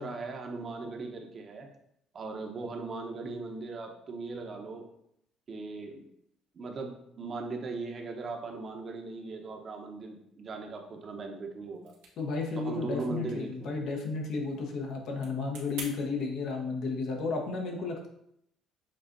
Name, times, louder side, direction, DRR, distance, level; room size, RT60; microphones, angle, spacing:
voice 1, 0.0-1.7 2.1-4.9 5.5-6.0 6.5-11.9 12.6-13.7, right 3 dB, 45° right, 3 dB, 0.8 m, -38 dB
sound 1, 11.7-15.9, right 4 dB, 85° right, 1.1 m, -49 dB
voice 2, 12.2-18.1, left 4 dB, 65° left, 1 dB, 1.0 m, -33 dB
7.4 x 2.5 x 2.6 m, 0.74 s
supercardioid pair, 70°, 0 cm